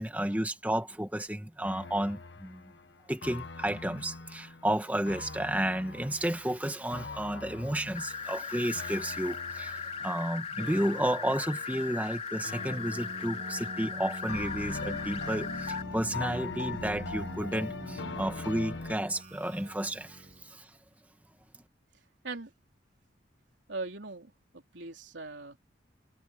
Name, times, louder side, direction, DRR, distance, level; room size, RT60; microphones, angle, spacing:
voice 1, 0.0-2.7 3.1-20.7, right 1 dB, 10° right, 1.6 m, -32 dB
sound 1, 1.6-12.1 12.4-13.9 14.3-18.9, left 3 dB, 75° left, 1.4 m, -42 dB
sound 2, 7.9-15.8, left 5 dB, 35° left, 3.7 m, -38 dB
Keyboard (musical), 12.5-20.6, equal, 40° right, 1.6 m, -45 dB
voice 2, 23.7-25.6, right 3 dB, 85° right, 3.4 m, -40 dB
head